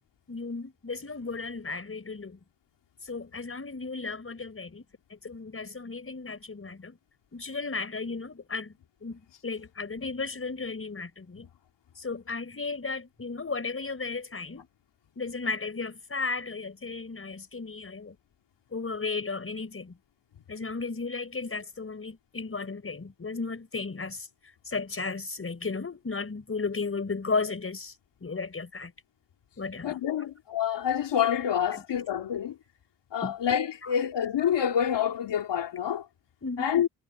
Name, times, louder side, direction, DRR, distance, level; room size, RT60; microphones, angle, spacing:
voice 1, 0.3-2.4 3.0-4.8 5.1-7.0 7.3-8.7 9.0-11.5 11.9-14.7 15.2-18.2 18.7-20.0 20.5-24.3 24.7-27.9 28.2-28.9 29.6-29.9 31.7-31.8 33.2-33.3 36.4-36.7, left 4 dB, 30° left, 4.9 m, -34 dB
voice 2, 29.8-32.6 33.1-36.1 36.6-36.9, left 9 dB, 80° left, 3.0 m, -27 dB
cardioid pair, 75°, 42 cm